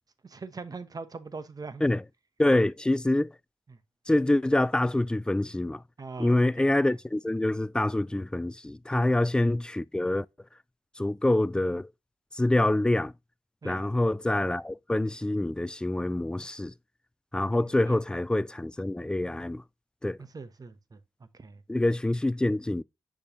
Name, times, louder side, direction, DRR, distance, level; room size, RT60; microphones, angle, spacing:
voice 1, 0.2-1.8 2.5-2.6 6.0-6.6 8.9-9.1 13.6-13.8 17.8-18.0 20.2-21.0 21.4-21.6, right 4 dB, 40° right, 0.9 m, -41 dB
voice 2, 2.4-3.3 4.1-5.8 6.2-10.3 11.0-11.9 12.3-13.1 13.6-16.7 17.3-19.6 20.0-20.2 21.7-22.8, left 1 dB, 10° left, 0.3 m, -26 dB
6.6 x 5.2 x 2.9 m
supercardioid pair, 45°, 10 cm